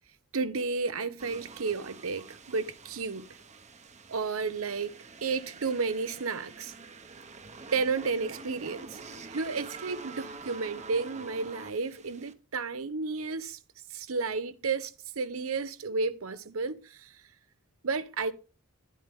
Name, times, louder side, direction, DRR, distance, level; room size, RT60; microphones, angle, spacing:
voice 1, 0.3-3.2 4.1-6.7 7.7-9.0 9.3-13.6 13.9-17.1 17.8-18.3, right 4 dB, 85° right, 0.9 m, -32 dB
sound 1, 1.2-12.3, right 4 dB, 35° right, 0.9 m, -47 dB
11.0 x 9.8 x 3.6 m
head